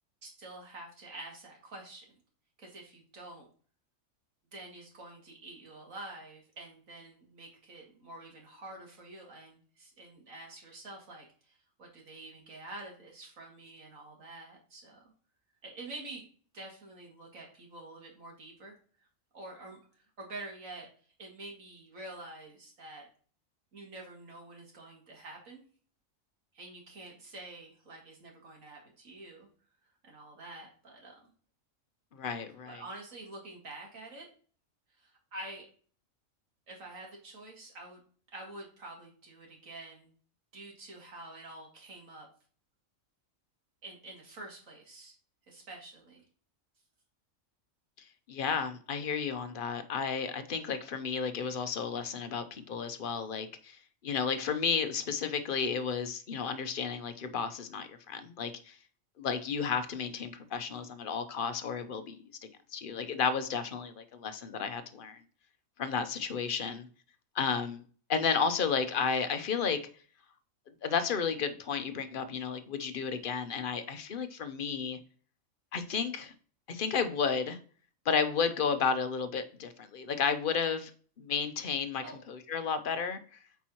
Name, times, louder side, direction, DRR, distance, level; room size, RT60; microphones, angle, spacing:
voice 1, 0.2-2.1 2.6-3.5 4.5-15.1 15.6-16.2 16.5-19.1 19.3-20.9 21.2-23.1 23.7-25.6 26.5-29.5 30.0-31.3 32.7-34.3 35.0-35.7 36.7-38.0 38.3-40.1 40.5-42.3 43.8-45.1 45.5-46.2 66.6-66.7 82.0-82.2, right 2 dB, 75° right, 2.4 m, -47 dB
voice 2, 32.1-32.8 48.3-53.8 54.0-58.7 59.2-62.2 62.7-65.2 65.8-66.9 67.4-67.8 68.1-69.8 70.8-75.0 75.7-76.3 76.7-77.6 78.1-80.9 81.2-83.2, left 6 dB, 50° left, 0.7 m, -32 dB
8.5 x 4.6 x 3.0 m
omnidirectional pair, 1.4 m